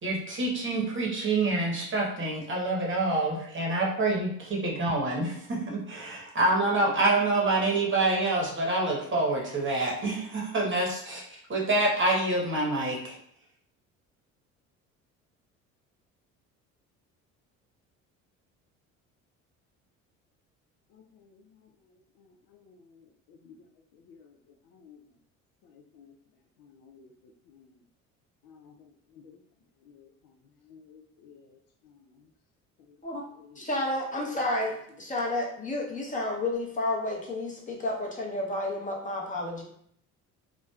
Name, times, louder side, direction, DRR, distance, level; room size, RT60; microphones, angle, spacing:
voice 1, 0.0-13.1, right 2 dB, 30° right, -2 dB, 0.9 m, -27 dB
voice 2, 20.9-21.5 21.9-23.6 23.9-24.4 24.7-25.0 25.6-26.1 26.6-27.1 27.5-27.8 28.4-29.4 29.8-30.4 30.6-32.3 32.9-33.0, left 6 dB, 60° left, 3 dB, 0.5 m, -56 dB
voice 3, 33.5-39.6, left 1 dB, 20° left, -2 dB, 0.8 m, -31 dB
3.1 x 2.1 x 2.3 m, 0.66 s
hypercardioid pair, 60°, 39 cm